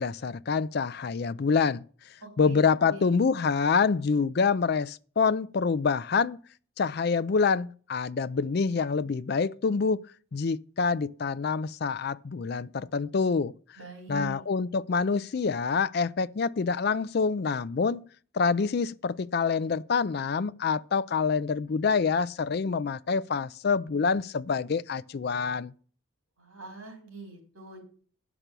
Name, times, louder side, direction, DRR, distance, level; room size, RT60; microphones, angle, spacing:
voice 1, 0.0-1.8 2.4-6.4 6.8-10.0 10.3-13.5 14.1-18.1 18.3-25.7, left 5 dB, 50° left, 0.4 m, -26 dB
voice 2, 2.2-2.6 2.9-3.2 13.8-14.4 26.4-27.8, right 3 dB, 80° right, 3.8 m, -43 dB
10.0 x 6.0 x 6.7 m
head